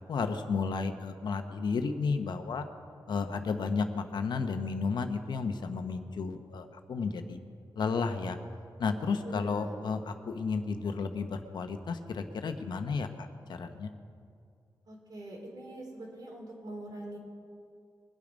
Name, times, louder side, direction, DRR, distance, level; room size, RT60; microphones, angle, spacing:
voice 1, 0.1-2.7 3.1-7.4 7.8-8.4 8.8-13.9, left 4 dB, 70° left, 7 dB, 1.0 m, -32 dB
voice 2, 9.2-9.8 14.9-17.2, right 1 dB, 60° right, -2 dB, 3.8 m, -43 dB
22.0 x 8.8 x 5.2 m, 2.4 s
wide cardioid pair, 125°, 8 cm